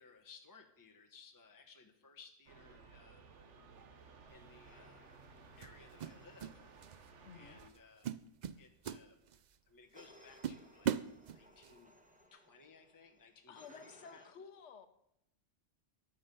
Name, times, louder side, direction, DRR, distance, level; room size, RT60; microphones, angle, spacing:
voice 1, 0.0-3.2 4.3-5.0 5.6-6.6 7.3-8.1 8.6-9.2 9.7-10.9 11.3-11.9 12.3-14.3, left 5 dB, 20° left, 3 dB, 1.0 m, -60 dB
sound 1, 2.5-7.7, right 5 dB, 75° right, 1.5 m, -58 dB
sound 2, 4.3-4.5 5.6-6.6 6.8-7.1 7.6-7.8 8.0-9.6 10.0-10.1 10.4-11.8, right 9 dB, 55° right, 0.5 m, -39 dB
sound 3, 4.6-7.8 9.9-14.3, equal, 5° right, 1.6 m, -64 dB
voice 2, 7.2-7.6 13.5-14.9, left 6 dB, 75° left, 9 dB, 1.3 m, -53 dB
14.0 x 10.5 x 5.3 m, 0.80 s
omnidirectional pair, 1.2 m